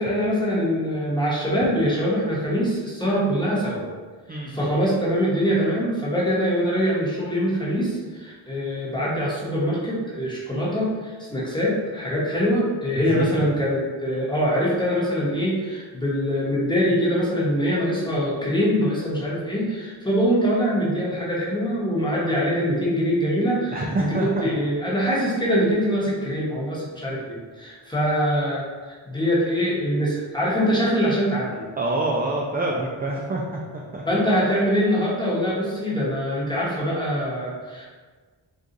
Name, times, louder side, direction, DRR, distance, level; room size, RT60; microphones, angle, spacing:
voice 1, 0.0-3.8 4.3-31.7 34.0-37.9, equal, 10° left, -7 dB, 1.0 m, -23 dB
voice 2, 4.3-4.7 12.9-13.5 23.7-24.5 31.8-34.0, right 2 dB, 20° right, -2 dB, 0.3 m, -27 dB
2.5 x 2.4 x 3.9 m, 1.4 s
wide cardioid pair, 65°, 48 cm